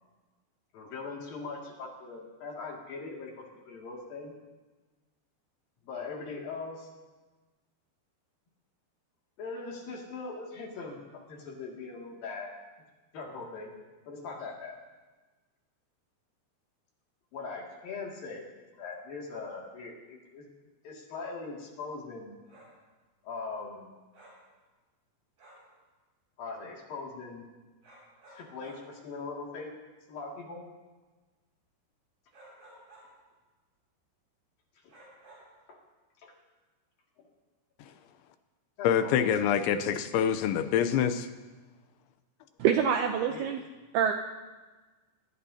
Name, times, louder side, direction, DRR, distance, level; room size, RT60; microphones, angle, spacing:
voice 1, 0.7-4.3 5.8-6.9 9.4-12.5 13.1-13.7 14.1-14.8 17.3-18.5 18.8-20.5 20.8-22.4 23.2-23.9 26.4-27.5 28.3-29.7 30.1-30.6 35.7-35.8 36.2-36.3 38.8-39.1 43.3-43.5, left 4 dB, 55° left, -2 dB, 3.8 m, -40 dB
sound 1, 22.4-22.8 24.1-24.5 25.4-25.7 27.8-28.9 32.3-33.2 34.9-35.6, right 1 dB, 45° right, 7.6 m, -55 dB
voice 2, 38.8-41.3, left 8 dB, 80° left, 9 dB, 3.1 m, -26 dB
voice 3, 42.6-43.6 43.9-44.1, right 8 dB, 85° right, 5 dB, 2.2 m, -25 dB
26.0 x 19.5 x 2.9 m, 1.3 s
omnidirectional pair, 5.5 m